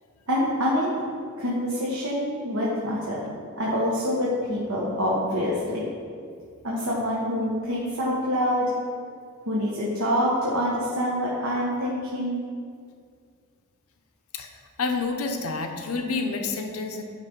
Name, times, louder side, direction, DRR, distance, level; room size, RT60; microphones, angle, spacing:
voice 1, 0.3-1.0 1.4-3.2 3.6-5.8 6.6-8.7 9.5-12.4, equal, 75° right, -6 dB, 1.2 m, -26 dB
voice 2, 14.8-17.0, left 4 dB, 75° left, 4 dB, 0.7 m, -28 dB
9.8 x 3.3 x 5.2 m, 2.2 s
head